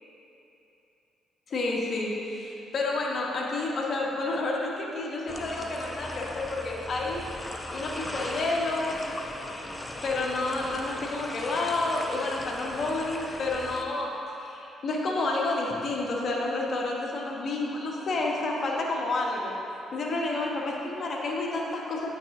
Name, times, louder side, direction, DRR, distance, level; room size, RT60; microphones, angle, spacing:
voice 1, 1.5-7.2 7.7-9.0 10.0-14.1 14.4-19.5 19.9-22.1, left 2 dB, 50° left, -2 dB, 1.2 m, -30 dB
sound 1, 5.3-13.8, left 1 dB, 15° left, 0.7 m, -38 dB
9.0 x 5.4 x 3.7 m, 3.0 s
figure-of-eight pair, 45°, 0 cm